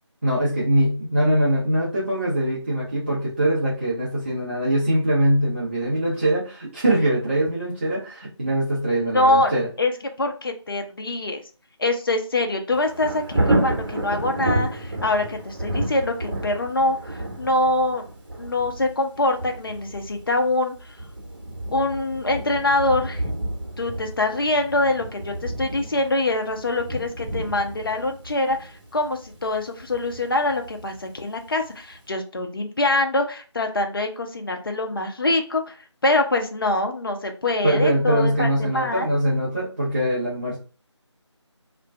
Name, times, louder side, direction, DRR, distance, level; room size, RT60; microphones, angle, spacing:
voice 1, 0.2-9.7 37.6-40.6, right 1 dB, 20° right, -9 dB, 0.5 m, -22 dB
voice 2, 9.0-9.9 10.2-11.4 11.8-18.1 18.4-20.7 21.7-23.2 23.8-35.8 36.0-39.1, left 2 dB, 50° left, 4 dB, 0.5 m, -24 dB
Thunder, 12.7-31.5 31.9-32.0, right 1 dB, 45° right, 1.0 m, -30 dB
2.5 x 2.2 x 3.2 m, 0.36 s
figure-of-eight pair, 160°, 15 cm